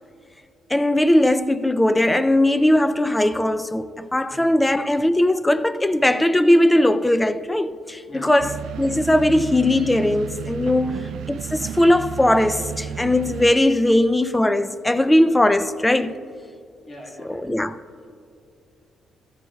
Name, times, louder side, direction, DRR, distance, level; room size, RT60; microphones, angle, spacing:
voice 1, 0.7-16.2 17.3-17.8, left 1 dB, 10° left, 0.4 m, -19 dB
voice 2, 4.3-4.6 8.1-8.5 10.8-11.1 16.9-17.4, equal, 35° left, 1.7 m, -43 dB
sound 1, 8.4-13.5, right 8 dB, 70° right, 0.3 m, -33 dB
15.0 x 14.0 x 2.4 m
cardioid pair, 90°, 0 cm